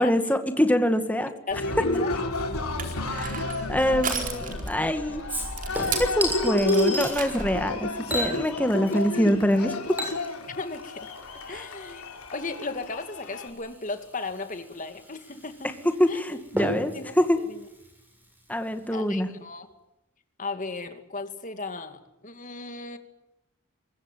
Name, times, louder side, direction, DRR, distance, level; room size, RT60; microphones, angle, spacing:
voice 1, 0.0-1.3 3.1-5.2 6.0-9.7 11.5-11.6 16.0-17.4 18.5-19.3, equal, 5° left, 7 dB, 2.0 m, -25 dB
Cheering, 1.5-13.5, left 2 dB, 90° left, 4.0 m, -31 dB
voice 2, 1.5-2.1 8.9-9.0 10.6-11.1 11.5-12.0 12.3-15.7 16.1-16.4 16.9-17.6 18.9-19.7 20.4-23.0, left 3 dB, 35° left, 8 dB, 2.5 m, -36 dB
Crushing, 2.5-7.7, right 4 dB, 40° right, 4.2 m, -35 dB
Chink clink / Liquid, 5.3-7.1 8.1-9.2 9.5-18.5 18.9-19.0, equal, 10° right, 7.8 m, -35 dB
24.0 x 21.5 x 9.2 m, 0.89 s
head